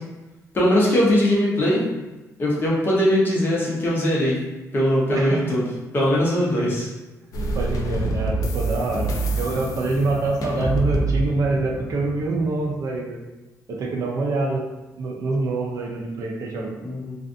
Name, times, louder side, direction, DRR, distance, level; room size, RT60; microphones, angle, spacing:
voice 1, 0.5-1.8 2.4-4.3 4.7-5.6 5.9-6.9 16.8-17.2, equal, 35° left, -5 dB, 0.7 m, -20 dB
voice 2, 5.1-5.4 6.5-6.7 7.5-13.2 13.7-14.6 15.0-16.7, right 3 dB, 65° right, 0 dB, 0.5 m, -25 dB
sound 1, 7.3-12.8, right 2 dB, 65° left, 0.4 m, -27 dB
2.4 x 2.4 x 2.5 m, 1.1 s
cardioid pair, 140°, 6 cm